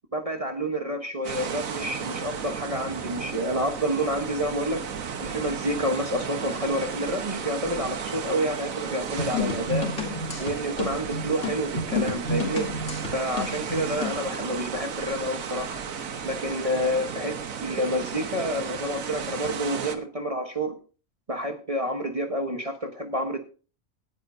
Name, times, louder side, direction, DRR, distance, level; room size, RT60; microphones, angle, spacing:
voice 1, 0.1-4.9 5.2-9.9 10.4-12.7 13.1-15.8 16.2-20.7 21.3-23.4, equal, 30° right, 4 dB, 1.1 m, -29 dB
sound 1, 1.2-20.0, right 7 dB, 85° right, 1.5 m, -34 dB
sound 2, 9.2-14.2, left 2 dB, 65° left, 3.1 m, -30 dB
18.0 x 9.7 x 2.7 m, 0.36 s
omnidirectional pair, 1.4 m